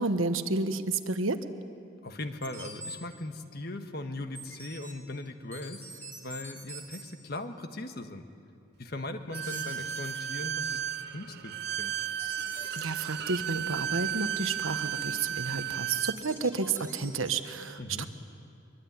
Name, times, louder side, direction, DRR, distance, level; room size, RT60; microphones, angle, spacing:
voice 1, 0.0-1.4 12.8-18.1, right 3 dB, 85° right, 9 dB, 1.3 m, -31 dB
voice 2, 2.0-8.3 8.8-10.8 11.1-11.9 17.8-18.1, left 2 dB, 50° left, 7 dB, 1.5 m, -39 dB
sound 1, 2.4-3.0 4.4-4.9 5.5-7.0 9.3-10.2 12.2-12.8 16.0-17.3, right 1 dB, 10° left, 2.9 m, -44 dB
Bowed string instrument, 9.3-16.2, right 10 dB, 50° right, 0.6 m, -34 dB
23.5 x 23.5 x 9.7 m, 2.5 s
head